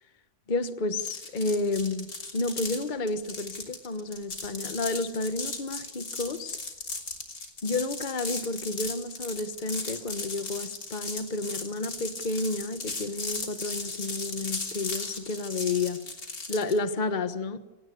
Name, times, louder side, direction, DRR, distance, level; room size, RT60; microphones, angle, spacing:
voice 1, 0.5-6.6 7.6-16.0 16.5-17.6, left 3 dB, 30° left, 1.3 m, -31 dB
sound 1, 1.0-16.8, left 3 dB, 65° left, 3.8 m, -37 dB
27.5 x 19.0 x 8.4 m
omnidirectional pair, 1.7 m